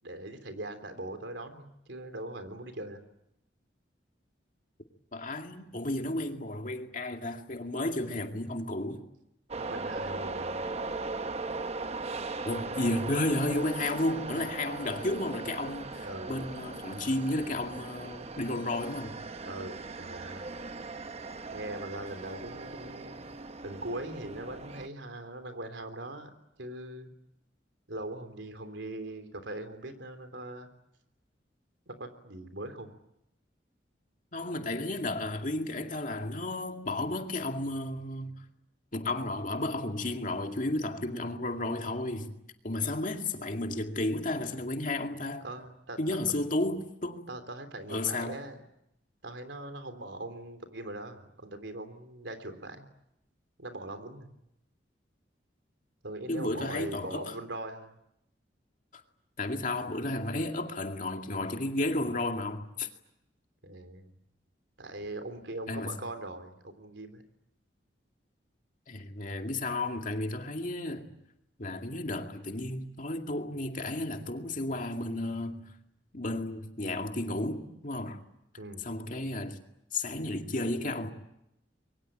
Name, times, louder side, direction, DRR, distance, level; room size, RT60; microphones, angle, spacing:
voice 1, 0.0-3.0 9.5-10.7 16.0-16.5 19.4-20.5 21.5-23.2 23.6-26.3 26.6-27.1 27.9-30.7 31.9-33.0 45.4-46.0 47.3-48.6 49.2-52.9 53.6-54.4 56.0-57.9 63.6-64.1 64.8-67.2 78.6-78.8, right 1 dB, 90° right, 3.4 m, -41 dB
voice 2, 5.1-9.0 12.4-19.2 34.3-38.4 38.9-42.4 42.6-45.4 46.0-47.2 47.9-48.4 56.3-57.3 58.9-59.0 59.4-62.9 65.7-65.9 68.9-71.1 71.6-75.7 76.1-78.2 78.8-79.6 79.9-81.1, left 2 dB, 45° left, 2.3 m, -33 dB
sound 1, 9.5-24.9, right 3 dB, 35° right, 1.0 m, -39 dB
26.5 x 23.0 x 8.9 m
head